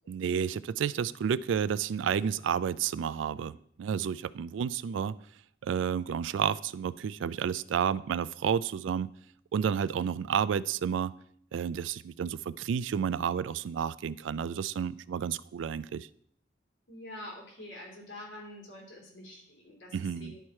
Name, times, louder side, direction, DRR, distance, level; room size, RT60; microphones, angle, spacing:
voice 1, 0.1-5.2 5.6-9.1 9.5-11.1 11.5-16.1 19.9-20.4, right 7 dB, 85° right, 18 dB, 0.3 m, -31 dB
voice 2, 16.9-20.4, left 1 dB, 90° left, -1 dB, 3.1 m, -46 dB
11.0 x 4.7 x 4.3 m, 0.65 s
head